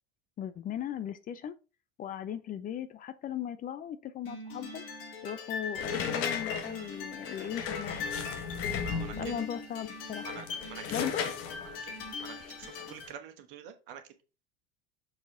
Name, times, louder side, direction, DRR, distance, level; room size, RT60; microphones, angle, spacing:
voice 1, 0.4-1.5 2.0-4.8 5.2-8.0 9.2-10.3 10.9-11.3 12.4-12.6, left 9 dB, 30° left, 0.5 m, -37 dB
sound 1, 4.2-13.1, left 5 dB, 65° left, 2.2 m, -40 dB
sound 2, 5.7-9.4 10.1-13.1, left 6 dB, 45° left, 1.2 m, -36 dB
voice 2, 8.7-9.4 10.2-11.0 11.8-11.9 12.2-14.0, right 9 dB, 60° right, 1.3 m, -46 dB
6.4 x 4.8 x 3.7 m
figure-of-eight pair, 75°, 30 cm